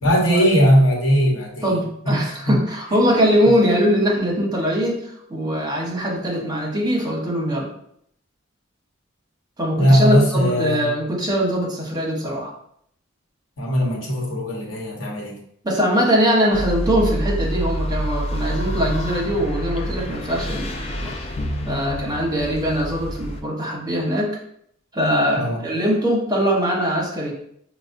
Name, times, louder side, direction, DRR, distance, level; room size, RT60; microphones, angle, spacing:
voice 1, 0.0-1.7 2.1-2.2 2.5-2.6 9.8-10.9 13.6-15.4 25.4-25.6, equal, 90° left, -2 dB, 0.9 m, -18 dB
voice 2, 1.6-7.7 9.6-12.5 15.6-21.1 21.7-24.4 24.9-27.3, equal, 20° right, -3 dB, 0.8 m, -21 dB
sound 1, 16.5-23.4, equal, 30° left, 0.3 m, -27 dB
4.9 x 2.0 x 2.5 m, 0.69 s
head